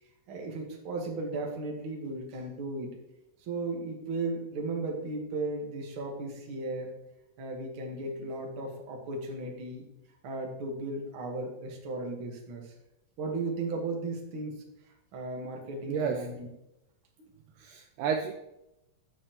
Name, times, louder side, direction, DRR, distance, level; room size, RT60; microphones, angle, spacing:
voice 1, 0.3-3.0 3.4-6.9 7.4-9.8 10.2-12.7 13.2-14.5 15.1-16.5 17.2-17.3, right 2 dB, 50° right, 0 dB, 1.7 m, -35 dB
voice 2, 17.6-18.3, right 6 dB, 85° right, 4 dB, 1.8 m, -30 dB
8.9 x 8.5 x 3.0 m, 0.90 s
omnidirectional pair, 4.2 m